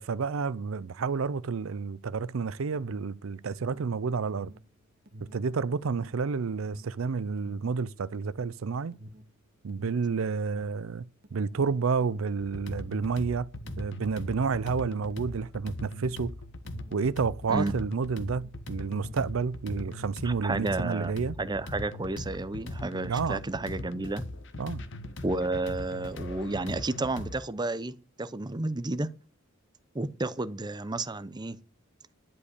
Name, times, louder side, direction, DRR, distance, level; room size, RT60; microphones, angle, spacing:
voice 1, 0.0-4.5 5.3-8.9 9.6-13.5 13.8-16.3 16.9-21.4 23.0-23.4 24.6-24.8, right 5 dB, 85° right, 0.5 m, -30 dB
Alarm, 2.7-20.2 20.4-21.7, equal, 50° right, 1.5 m, -49 dB
sound 1, 12.4-27.4, left 1 dB, 65° left, 1.2 m, -40 dB
voice 2, 20.2-21.1 21.4-24.2 25.2-29.1 29.9-31.6, right 2 dB, 20° right, 0.6 m, -31 dB
11.0 x 5.1 x 8.2 m
head